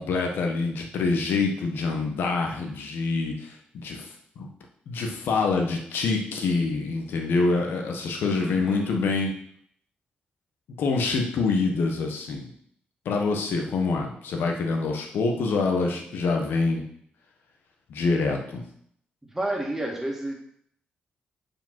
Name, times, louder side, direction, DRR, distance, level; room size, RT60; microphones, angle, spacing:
voice 1, 0.0-4.1 4.4-4.5 4.9-9.3 10.8-12.5 13.0-16.8 17.9-18.6, left 4 dB, 85° left, 2 dB, 1.3 m, -26 dB
voice 2, 8.3-9.1 19.3-20.3, right 1 dB, 10° right, 0 dB, 1.8 m, -31 dB
5.2 x 4.9 x 5.9 m, 0.67 s
cardioid pair, 95°, 4 cm